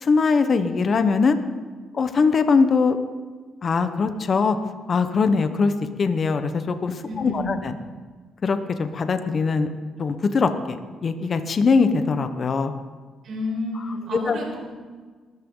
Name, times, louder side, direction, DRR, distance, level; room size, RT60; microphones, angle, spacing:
voice 1, 0.0-1.4 1.9-3.0 3.6-4.6 4.9-5.7 6.0-7.7 8.4-9.7 10.0-12.8 14.3-14.4, left 4 dB, 45° left, 9 dB, 1.2 m, -21 dB
voice 2, 7.1-7.6 13.2-14.7, left 1 dB, 65° right, -1 dB, 5.8 m, -30 dB
22.0 x 13.5 x 4.0 m, 1.5 s
cardioid pair, 90°, 0 cm